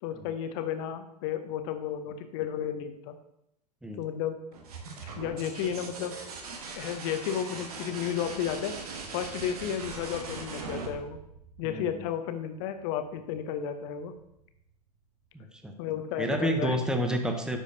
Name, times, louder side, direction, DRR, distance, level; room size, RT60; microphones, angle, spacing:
voice 1, 0.0-3.2 3.9-4.4 5.2-6.2 6.8-8.8 9.1-11.2 11.6-14.1 15.8-16.8, left 9 dB, 45° left, 8 dB, 0.8 m, -33 dB
sound 1, 4.5-12.1 13.9-14.4, right 4 dB, 60° right, 1.2 m, -40 dB
voice 2, 11.6-12.0 15.3-15.7 16.2-17.6, right 1 dB, 5° right, 5 dB, 0.7 m, -30 dB
9.9 x 5.0 x 2.7 m, 0.80 s
figure-of-eight pair, 100°, 21 cm